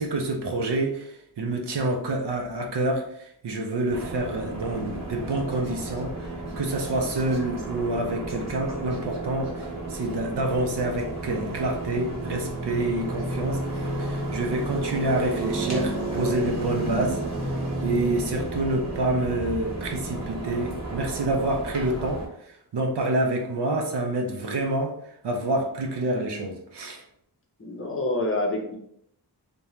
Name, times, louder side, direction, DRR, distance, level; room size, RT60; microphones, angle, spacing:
voice 1, 0.0-17.2 17.8-27.0, right 2 dB, 70° right, 2 dB, 0.6 m, -28 dB
sound 1, 3.9-22.3, right 2 dB, 40° right, 0.8 m, -32 dB
voice 2, 27.6-28.8, left 2 dB, 30° left, -1 dB, 0.6 m, -27 dB
2.5 x 2.2 x 3.0 m, 0.72 s
wide cardioid pair, 75°, 42 cm